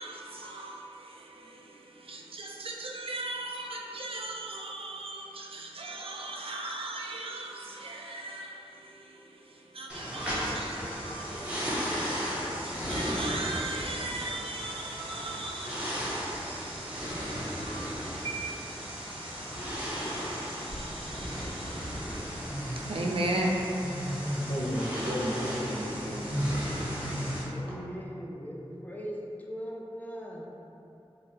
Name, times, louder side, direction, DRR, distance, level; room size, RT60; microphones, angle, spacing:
voice 1, 0.0-22.4 22.9-23.6, right 2 dB, 65° right, 0.4 m, -38 dB
sound 1, 9.9-27.4, equal, 10° right, 0.7 m, -35 dB
voice 2, 24.5-26.2 27.0-27.3, equal, 70° left, 0.8 m, -33 dB
voice 3, 27.5-30.5, equal, 15° left, 0.4 m, -40 dB
3.6 x 2.0 x 2.8 m
wide cardioid pair, 50°, 10 cm